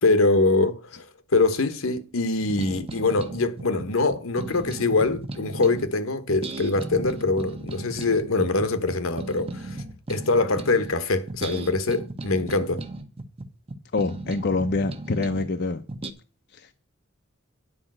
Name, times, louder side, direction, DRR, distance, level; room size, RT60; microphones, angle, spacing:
voice 1, 0.0-1.0 1.3-9.8 10.1-12.8, left 3 dB, 80° left, 1.2 m, -23 dB
sound 1, 2.4-5.9 6.3-11.0 11.3-15.5 15.9-16.1, right 2 dB, 30° right, 1.0 m, -36 dB
voice 2, 13.9-15.8 16.5-16.7, left 3 dB, 55° left, 0.7 m, -26 dB
9.9 x 5.1 x 7.7 m
head